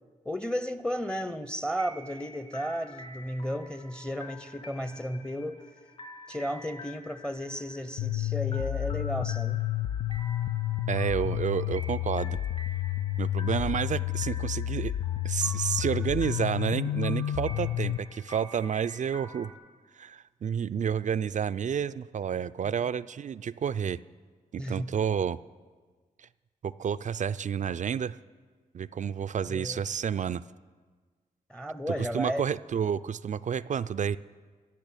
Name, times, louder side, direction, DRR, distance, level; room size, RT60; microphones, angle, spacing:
voice 1, 0.2-5.7 6.3-9.7 22.6-22.7 24.6-24.9 29.5-29.8 31.5-32.5, equal, 5° left, 0.7 m, -34 dB
sound 1, 1.7-19.5, left 1 dB, 40° left, 2.7 m, -48 dB
sound 2, 8.0-18.0, left 13 dB, 85° left, 0.4 m, -30 dB
voice 2, 10.9-12.4 13.2-14.9 15.2-19.5 19.9-24.0 24.5-25.4 26.2-26.3 26.6-28.2 28.7-30.4 31.9-34.2, right 7 dB, 50° right, 0.4 m, -30 dB
14.0 x 6.2 x 8.9 m
supercardioid pair, 45°, 16 cm